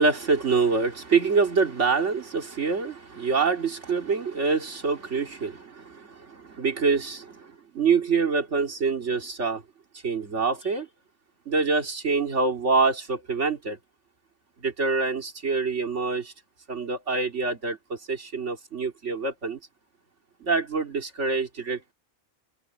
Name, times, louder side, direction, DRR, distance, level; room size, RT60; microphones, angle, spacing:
voice 1, 0.0-9.6 10.0-10.9 11.5-13.8 14.6-16.3 16.7-19.6 20.4-21.9, right 4 dB, 85° right, 2.8 m, -26 dB
omnidirectional pair, 1.2 m